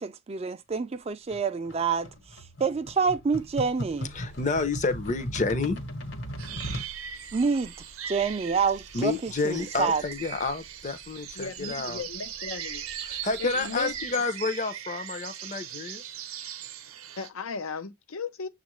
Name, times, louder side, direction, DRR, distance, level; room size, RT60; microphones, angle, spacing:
voice 1, 0.0-2.1 2.6-4.1 7.3-7.7 8.1-10.0, right 5 dB, 30° right, 0.3 m, -27 dB
sound 1, 1.3-6.9, equal, 65° left, 1.2 m, -37 dB
sound 2, 3.3-14.1, right 6 dB, 55° right, 0.8 m, -49 dB
voice 2, 4.1-5.8 8.9-12.0 13.0-16.0, left 3 dB, 35° left, 0.6 m, -29 dB
sound 3, 6.4-17.3, right 9 dB, 85° right, 0.6 m, -40 dB
voice 3, 11.4-12.8 13.4-14.0 17.2-18.5, left 5 dB, 85° left, 0.6 m, -36 dB
7.0 x 2.5 x 3.0 m
head